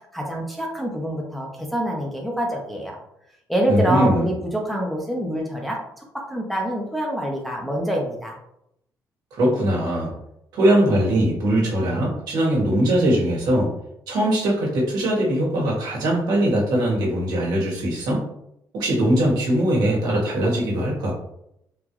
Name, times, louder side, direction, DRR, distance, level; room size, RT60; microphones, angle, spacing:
voice 1, 0.1-3.0 3.5-8.3, right 1 dB, ahead, -1 dB, 0.7 m, -26 dB
voice 2, 3.7-4.2 9.3-10.1 10.5-13.7 14.1-18.2 18.7-21.1, right 1 dB, 75° right, -3 dB, 1.4 m, -21 dB
3.8 x 2.4 x 3.0 m, 0.78 s
cardioid pair, 105°, 7 cm